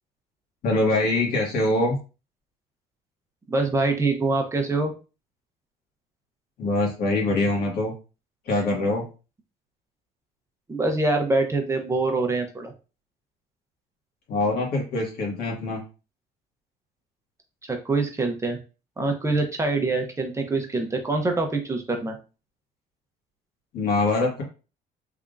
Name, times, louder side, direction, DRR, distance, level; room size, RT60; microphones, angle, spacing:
voice 1, 0.6-2.0 6.6-7.9 8.5-9.0 14.3-15.8 23.7-24.4, left 2 dB, 70° left, -1 dB, 1.8 m, -23 dB
voice 2, 3.5-4.9 10.7-12.7 17.6-18.6 19.0-22.2, right 3 dB, 15° right, 3 dB, 0.7 m, -24 dB
3.5 x 3.4 x 2.5 m, 0.32 s
cardioid pair, 110°, 17 cm